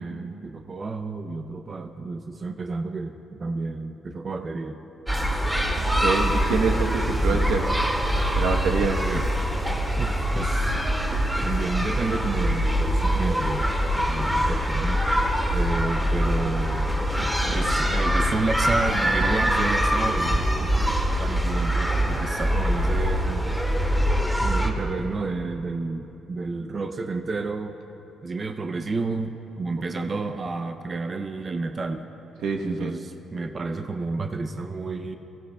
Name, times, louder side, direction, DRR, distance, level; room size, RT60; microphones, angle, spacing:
voice 1, 0.0-4.8 7.3-7.5 8.8-9.3 10.0-10.8 11.4-13.7 14.1-15.1 15.5-16.9 17.5-20.7 21.2-23.4 24.4-27.8 28.2-32.0 32.6-35.2, right 3 dB, 35° right, 6 dB, 0.6 m, -31 dB
sound 1, 5.1-24.7, equal, 5° right, 2.0 m, -24 dB
voice 2, 6.0-7.6 8.3-9.0 29.9-30.1 32.4-32.9, right 5 dB, 80° right, 2 dB, 1.1 m, -26 dB
22.5 x 15.5 x 2.3 m, 3.0 s
cardioid pair, 90°, 0 cm